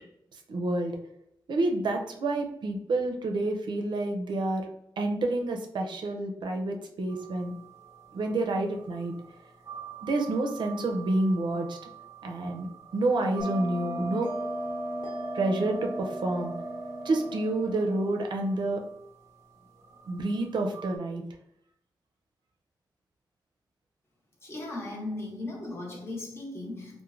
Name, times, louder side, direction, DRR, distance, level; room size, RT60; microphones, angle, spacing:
voice 1, 0.5-1.0 1.5-4.7 5.0-7.5 8.1-9.1 10.0-11.8 12.2-12.7 12.9-14.3 15.3-16.5 17.0-18.8 20.1-21.2, right 2 dB, 85° right, 3 dB, 0.5 m, -28 dB
sound 1, 7.1-21.0, right 9 dB, 35° right, 0.6 m, -48 dB
Bell, 13.4-18.5, right 1 dB, 60° left, 1.1 m, -36 dB
voice 2, 24.4-27.0, left 2 dB, 35° left, -2 dB, 0.8 m, -37 dB
3.1 x 2.1 x 2.4 m, 0.75 s
wide cardioid pair, 115°, 8 cm